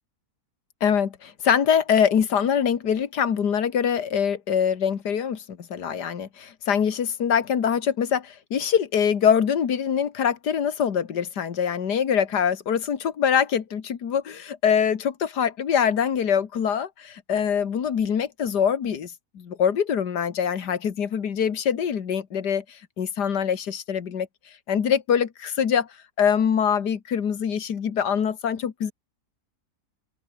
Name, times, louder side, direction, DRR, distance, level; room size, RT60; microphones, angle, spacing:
voice 1, 0.8-24.3 24.7-25.9 26.2-28.9, left 7 dB, 80° left, 2.2 m, -24 dB
omnidirectional pair, 1.7 m